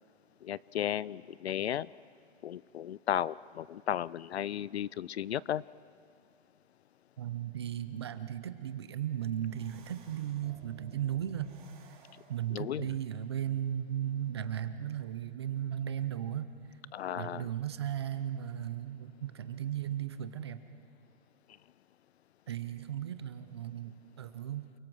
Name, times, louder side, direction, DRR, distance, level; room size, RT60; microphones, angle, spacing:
voice 1, 0.4-1.9 2.4-5.6 12.5-13.0 16.9-17.5, left 10 dB, 65° left, 22 dB, 0.5 m, -34 dB
voice 2, 7.2-11.6 11.8-12.0 12.3-16.5 17.2-20.6 22.5-24.7, right 10 dB, 25° right, 11 dB, 0.6 m, -36 dB
sound 1, 9.2-12.7, right 5 dB, 45° right, 3.3 m, -56 dB
28.5 x 23.0 x 6.2 m, 2.5 s
hypercardioid pair, 170°, 34 cm